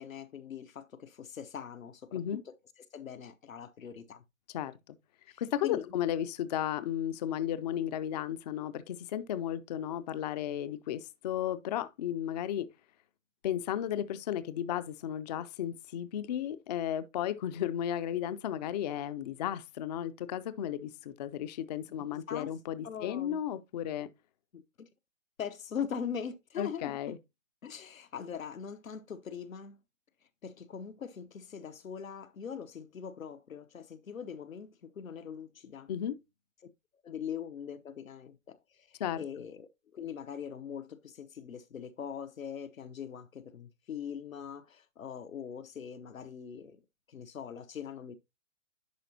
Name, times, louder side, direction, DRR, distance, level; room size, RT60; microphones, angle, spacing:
voice 1, 0.0-2.5 2.9-4.2 5.3-5.8 22.0-22.5 22.8-23.4 24.5-24.9 25.4-27.2 27.6-29.8 30.4-35.9 37.0-46.8 47.1-48.2, left 7 dB, 90° left, 1.0 m, -42 dB
voice 2, 4.5-5.0 5.4-12.7 13.4-24.1 26.6-27.2 35.9-36.2 39.0-39.2, left 10 dB, 35° left, 0.4 m, -34 dB
10.5 x 4.7 x 2.8 m
hypercardioid pair, 130°, 39 cm